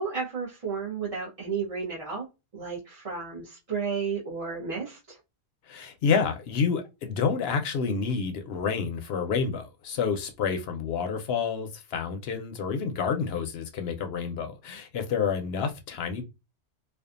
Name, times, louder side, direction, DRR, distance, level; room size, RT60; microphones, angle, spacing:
voice 1, 0.0-2.3 2.5-5.2, right 5 dB, 35° right, 0.7 m, -32 dB
voice 2, 5.7-16.2, left 6 dB, 70° left, 0.8 m, -29 dB
2.5 x 2.3 x 2.4 m
omnidirectional pair, 1.2 m